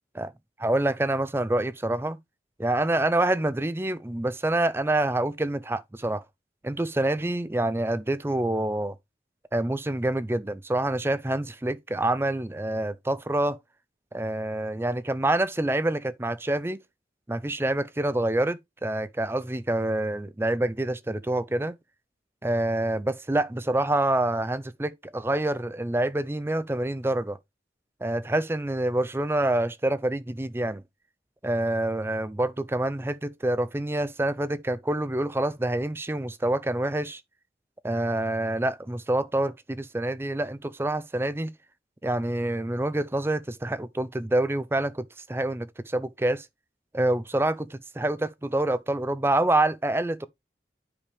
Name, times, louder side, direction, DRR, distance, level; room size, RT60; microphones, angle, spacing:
voice 1, 0.6-2.2 2.6-6.2 6.6-9.0 9.5-13.6 14.1-16.8 17.3-21.7 22.4-27.4 28.0-30.8 31.4-37.2 37.8-41.5 42.0-46.5 46.9-50.3, right 1 dB, 15° right, 0.4 m, -27 dB
9.8 x 5.2 x 3.3 m
head